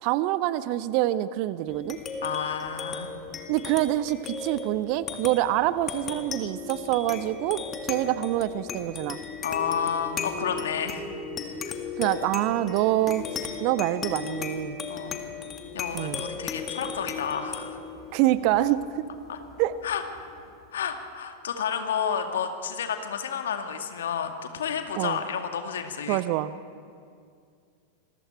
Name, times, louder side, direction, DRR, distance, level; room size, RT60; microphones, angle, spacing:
voice 1, 0.0-2.0 3.5-9.2 12.0-13.2 13.6-14.8 15.9-16.2 18.1-19.1 19.6-19.8 25.0-25.2 26.1-26.5, right 14 dB, 45° right, 16 dB, 0.7 m, -26 dB
sound 1, 1.7-20.5, left 5 dB, 25° left, 2.0 m, -37 dB
voice 2, 2.2-3.1 9.4-11.1 11.7-11.8 14.9-15.2 15.7-17.8 19.3-19.4 19.8-20.0 20.7-26.2, left 7 dB, 60° left, 6 dB, 2.1 m, -31 dB
27.0 x 22.0 x 4.5 m, 2.3 s
figure-of-eight pair, 90°, 0 cm